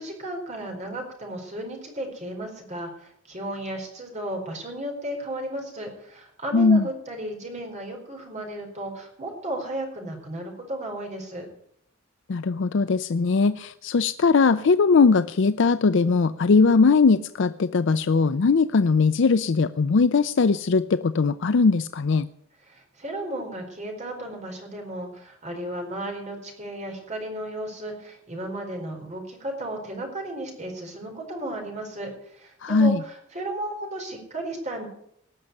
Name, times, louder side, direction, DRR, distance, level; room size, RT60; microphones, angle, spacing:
voice 1, 0.0-11.5 22.7-34.9, right 1 dB, 35° right, 2 dB, 4.5 m, -34 dB
voice 2, 6.5-6.9 12.3-22.3 32.6-33.0, left 4 dB, 60° left, 12 dB, 0.5 m, -20 dB
19.0 x 6.5 x 9.6 m, 0.72 s
head